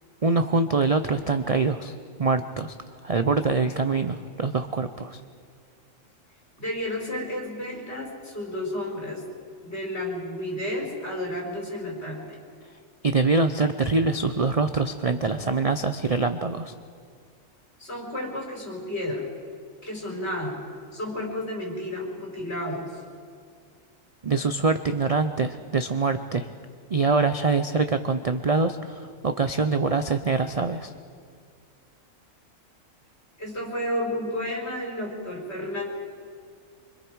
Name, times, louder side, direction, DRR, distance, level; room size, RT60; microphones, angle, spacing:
voice 1, 0.2-2.7 3.0-5.2 13.0-16.7 24.2-26.5 26.9-30.9, right 3 dB, 40° right, 8 dB, 0.5 m, -24 dB
voice 2, 6.6-9.3 9.6-12.2 17.8-19.2 19.8-20.6 20.9-22.9 33.4-35.9, left 1 dB, 50° left, -2 dB, 5.1 m, -31 dB
26.0 x 25.0 x 4.7 m, 2.1 s
omnidirectional pair, 1.4 m